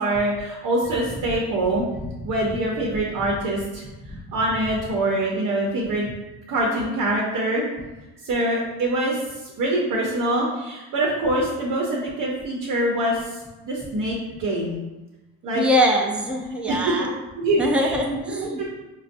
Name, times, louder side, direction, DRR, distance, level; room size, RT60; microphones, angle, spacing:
voice 1, 0.0-1.8 2.2-3.8 4.3-6.0 6.5-7.7 8.2-14.8 15.4-15.6 16.7-17.0 17.4-18.0 18.3-18.7, right 1 dB, 60° right, -2 dB, 0.9 m, -24 dB
voice 2, 15.6-17.1 17.6-18.6, equal, 5° right, 0 dB, 0.5 m, -23 dB
5.3 x 2.0 x 2.6 m, 1.1 s
supercardioid pair, 90°, 36 cm